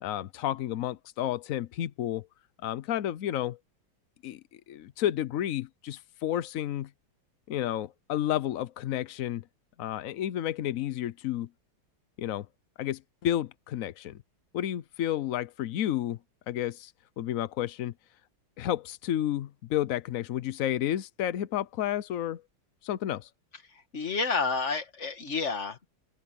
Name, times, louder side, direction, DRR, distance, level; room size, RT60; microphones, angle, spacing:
voice 1, 0.0-2.3 2.6-3.6 4.2-6.9 7.5-9.4 9.8-11.5 12.2-12.5 12.8-14.2 14.5-16.2 16.5-16.9 17.2-17.9 18.6-22.4 22.8-23.3, left 12 dB, 75° left, 0.7 m, -31 dB
voice 2, 23.9-25.9, left 4 dB, 35° left, 1.9 m, -30 dB
open air
omnidirectional pair, 2.2 m